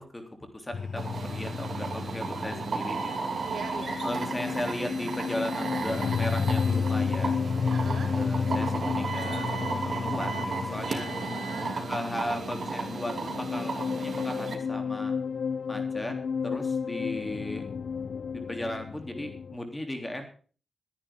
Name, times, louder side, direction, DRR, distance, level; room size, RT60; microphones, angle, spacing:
voice 1, 0.0-3.3 4.0-7.4 8.1-9.5 10.0-11.1 11.9-15.1 15.7-16.1 16.4-17.6 18.3-20.2, left 1 dB, 15° left, 5 dB, 3.3 m, -36 dB
sound 1, 0.7-19.6, left 5 dB, 70° left, 0.9 m, -32 dB
sound 2, 1.0-14.5, right 4 dB, 55° right, 2.9 m, -34 dB
voice 2, 3.5-4.1 7.7-8.1 11.3-12.6, right 5 dB, 75° right, 4 dB, 3.7 m, -42 dB
21.5 x 10.5 x 3.8 m, 0.39 s
wide cardioid pair, 135°, 0 cm